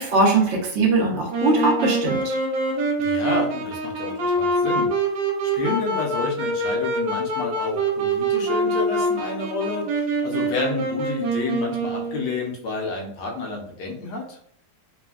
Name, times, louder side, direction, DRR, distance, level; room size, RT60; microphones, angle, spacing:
voice 1, 0.0-2.3, right 2 dB, 65° right, 0 dB, 0.6 m, -20 dB
Wind instrument woodwind instrument, 1.3-12.4, right 2 dB, 80° right, 1.3 m, -25 dB
voice 2, 3.0-4.9 5.5-14.4, left 3 dB, 70° left, -1 dB, 1.2 m, -30 dB
3.3 x 2.1 x 2.3 m, 0.65 s
omnidirectional pair, 2.0 m